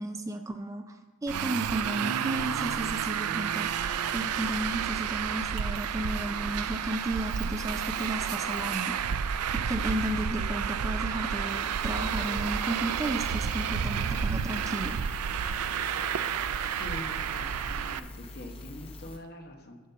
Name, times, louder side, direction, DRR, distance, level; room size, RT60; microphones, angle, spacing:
voice 1, 0.0-9.0 9.5-15.0, right 1 dB, 15° right, 7 dB, 0.3 m, -34 dB
Traffic noise roadway noise, 1.3-18.0, right 7 dB, 90° right, 0.4 m, -31 dB
sound 1, 11.5-19.2, left 2 dB, 25° left, 0.7 m, -45 dB
voice 2, 16.8-19.8, left 1 dB, 45° left, 3 dB, 1.0 m, -44 dB
11.0 x 4.1 x 6.8 m, 1.5 s
head